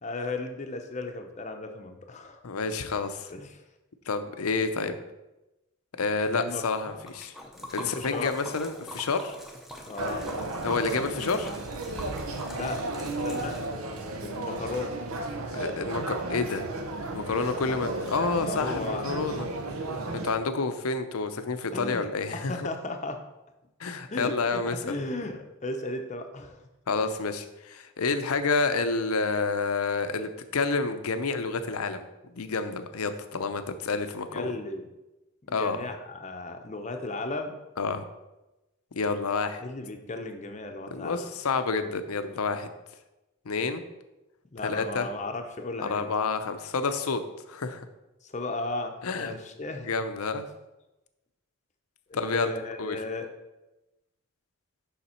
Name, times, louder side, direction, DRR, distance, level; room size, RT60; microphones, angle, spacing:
voice 1, 0.0-2.4 3.3-3.6 6.4-6.6 7.6-8.4 9.8-10.3 12.5-12.8 13.2-13.6 14.2-14.9 17.7-17.8 18.4-19.1 21.7-22.1 22.3-23.2 24.1-26.6 27.0-27.2 34.3-34.9 35.4-37.5 39.6-41.2 44.5-46.1 48.2-49.9 52.1-53.3, left 2 dB, 30° left, 5 dB, 0.7 m, -35 dB
voice 2, 2.4-3.3 4.1-5.0 6.0-7.3 7.7-9.3 10.6-11.5 15.5-16.7 17.1-19.5 20.1-22.5 23.8-24.8 26.9-32.0 32.3-34.5 35.5-35.8 37.8-38.0 39.0-39.6 40.9-42.7 43.5-43.8 44.6-45.1 45.8-47.2 47.5-47.8 49.0-49.3 49.9-50.5 52.1-52.5 52.8-53.0, left 4 dB, 85° left, 10 dB, 0.6 m, -29 dB
Liquid, 6.9-14.0, equal, ahead, 0.7 m, -43 dB
sound 1, 10.0-20.3, right 2 dB, 80° right, 0.8 m, -34 dB
7.0 x 5.7 x 4.4 m, 1.0 s
head